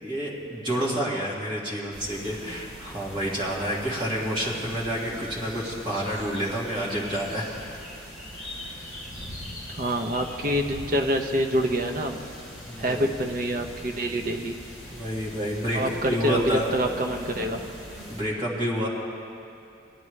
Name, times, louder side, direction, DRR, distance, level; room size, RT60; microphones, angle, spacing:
voice 1, 0.0-7.5 8.5-8.9 12.6-13.1 14.9-16.7 18.1-18.9, equal, 25° right, -5 dB, 1.8 m, -29 dB
sound 1, 1.9-18.2, equal, 5° right, 2.4 m, -42 dB
voice 2, 9.8-12.2 12.8-14.6 15.7-17.6, equal, 45° right, 4 dB, 0.7 m, -26 dB
18.0 x 11.0 x 3.2 m, 2.6 s
head